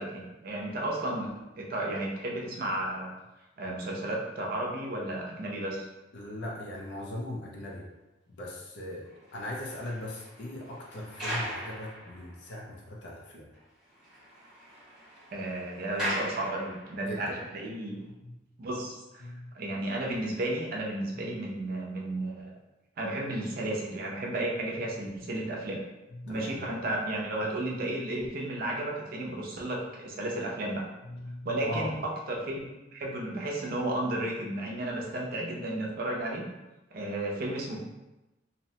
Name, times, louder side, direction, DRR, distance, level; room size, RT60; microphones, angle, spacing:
voice 1, 0.0-3.1 3.6-5.9 15.3-18.0 18.6-22.5 23.0-25.8 26.2-30.9 31.4-36.5 36.9-37.8, right 1 dB, 55° right, -1 dB, 0.5 m, -33 dB
voice 2, 6.1-7.9 8.4-13.5 17.0-17.2 18.2-18.3 19.2-19.5 26.1-26.5 31.1-31.9, left 1 dB, 70° left, -2 dB, 0.5 m, -39 dB
sound 1, 9.0-12.8 13.1-13.2 13.5-13.6 13.9-17.2 17.9-18.0, equal, 5° right, 0.9 m, -39 dB
2.7 x 2.1 x 2.7 m, 1.0 s
head